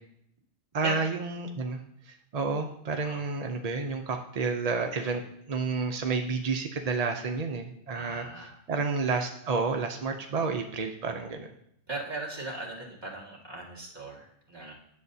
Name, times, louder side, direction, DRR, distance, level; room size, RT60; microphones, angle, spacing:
voice 1, 0.7-1.8 2.3-5.2 5.5-8.2 8.7-11.5, right 4 dB, 65° right, 4 dB, 0.3 m, -30 dB
voice 2, 7.9-8.6 11.9-14.7, right 2 dB, 20° right, -5 dB, 2.1 m, -38 dB
10.5 x 7.4 x 2.7 m, 0.73 s
omnidirectional pair, 1.4 m